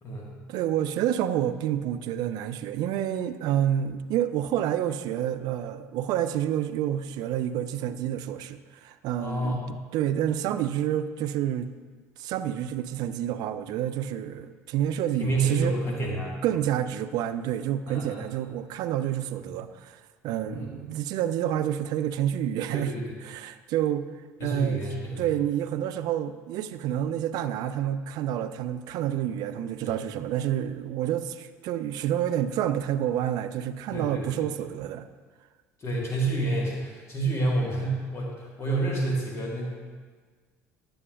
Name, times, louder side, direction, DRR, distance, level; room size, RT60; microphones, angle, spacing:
voice 1, 0.5-11.7 12.2-15.7 16.4-22.9 23.2-24.0 24.4-24.8 25.2-35.1, right 11 dB, 60° right, 11 dB, 0.5 m, -29 dB
voice 2, 9.2-9.6 15.2-16.3 17.9-18.2 20.5-20.7 22.7-23.2 24.4-25.3 29.8-29.9 33.9-34.5 35.8-39.7, right 2 dB, 40° left, -3 dB, 1.9 m, -29 dB
11.0 x 7.7 x 2.5 m, 1.5 s
hypercardioid pair, 65°, 8 cm